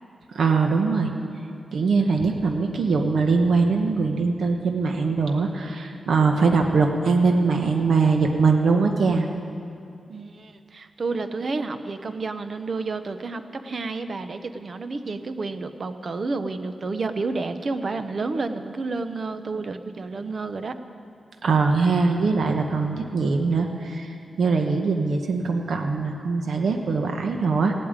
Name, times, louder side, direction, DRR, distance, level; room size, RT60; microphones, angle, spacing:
voice 1, 0.3-1.1 1.7-9.3 21.4-24.1 24.4-27.7, right 4 dB, 75° right, 3 dB, 1.1 m, -22 dB
voice 2, 10.1-20.8, right 3 dB, 45° right, 9 dB, 0.7 m, -30 dB
16.5 x 8.8 x 8.9 m, 2.4 s
wide cardioid pair, 135°, 0 cm